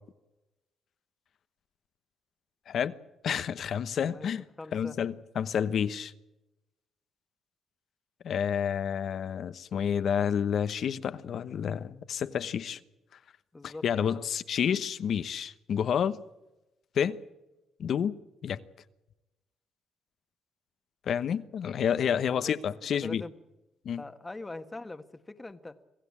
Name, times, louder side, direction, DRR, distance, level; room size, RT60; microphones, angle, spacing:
voice 1, 3.2-4.4 4.7-6.1 8.2-12.8 13.6-16.2 16.9-17.2 17.8-18.1 18.4-18.6 21.1-23.2 23.8-24.0, left 8 dB, 60° left, 1.0 m, -29 dB
voice 2, 4.6-5.0 13.5-14.2 22.3-22.5 22.9-23.3 24.0-25.8, left 2 dB, 20° left, 1.4 m, -42 dB
26.0 x 16.0 x 8.7 m
cardioid pair, 90°, 0 cm